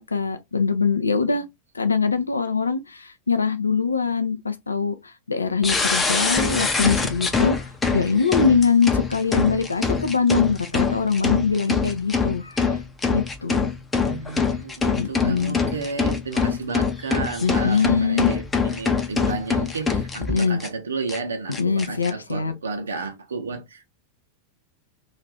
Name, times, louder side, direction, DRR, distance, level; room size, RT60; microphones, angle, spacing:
voice 1, 0.0-1.4 1.7-7.6 7.9-12.8 13.1-13.7 15.0-15.6 17.4-18.3 20.3-20.6 21.6-22.5, left 5 dB, 80° left, 0.3 m, -23 dB
sound 1, 5.6-20.7 21.1-21.2 21.5-22.1, left 5 dB, 15° left, 0.5 m, -24 dB
voice 2, 14.0-23.9, right 4 dB, 70° right, 0.6 m, -32 dB
2.5 x 2.4 x 3.2 m
figure-of-eight pair, 90°, 0 cm